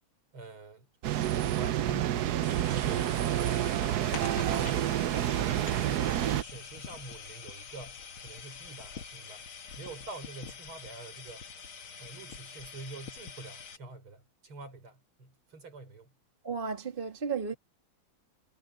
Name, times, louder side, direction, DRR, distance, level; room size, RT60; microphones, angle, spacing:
voice 1, 0.3-4.9 5.1-11.5 12.0-16.1, right 3 dB, 85° right, 5.9 m, -46 dB
sound 1, 1.0-6.4, right 12 dB, 65° right, 1.0 m, -29 dB
sound 2, 2.4-13.8, left 6 dB, 75° left, 2.5 m, -45 dB
voice 2, 16.4-17.5, right 5 dB, 25° right, 2.3 m, -33 dB
omnidirectional pair, 2.3 m